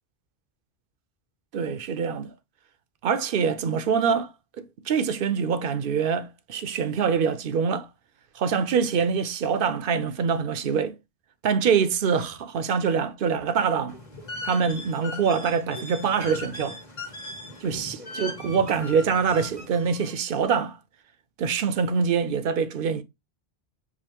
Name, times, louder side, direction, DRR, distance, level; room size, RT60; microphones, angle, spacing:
voice 1, 1.5-2.3 3.0-4.3 4.9-7.9 8.3-10.9 11.4-14.0 14.4-16.8 17.6-20.8 21.4-23.0, right 6 dB, 65° right, 0.8 m, -24 dB
sound 1, 13.9-20.1, left 2 dB, 45° left, 1.4 m, -39 dB
7.0 x 2.5 x 2.9 m
omnidirectional pair, 1.0 m